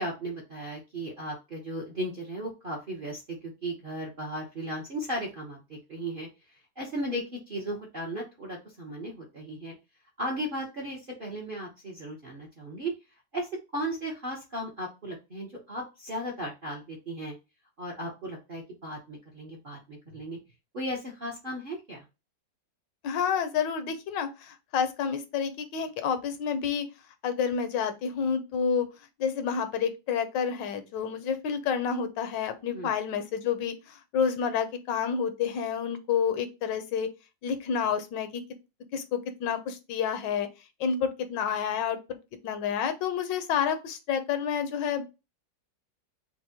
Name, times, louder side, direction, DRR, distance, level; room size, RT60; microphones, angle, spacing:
voice 1, 0.0-6.3 6.8-9.7 10.2-12.9 13.3-17.4 17.8-20.4 20.7-22.0 32.7-32.9, right 1 dB, 45° right, -2 dB, 0.7 m, -36 dB
voice 2, 23.0-26.8 27.2-28.9 29.2-37.1 37.4-38.4 38.9-40.5 40.8-42.0 42.4-45.0, left 7 dB, 75° left, 9 dB, 1.3 m, -29 dB
5.9 x 2.2 x 2.7 m, 0.26 s
omnidirectional pair, 2.0 m